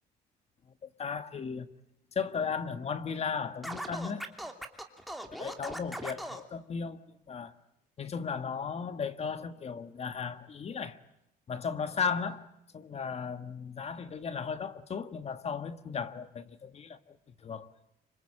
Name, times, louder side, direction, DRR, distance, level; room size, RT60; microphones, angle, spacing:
voice 1, 1.0-1.7 2.1-4.2 5.4-7.0 7.3-7.5 8.0-11.0 11.5-12.5 12.7-17.7, left 6 dB, 40° left, 1.6 m, -35 dB
Scratching (performance technique), 3.6-6.4, right 1 dB, ahead, 3.0 m, -39 dB
26.0 x 25.0 x 8.7 m
cardioid pair, 110°, 17 cm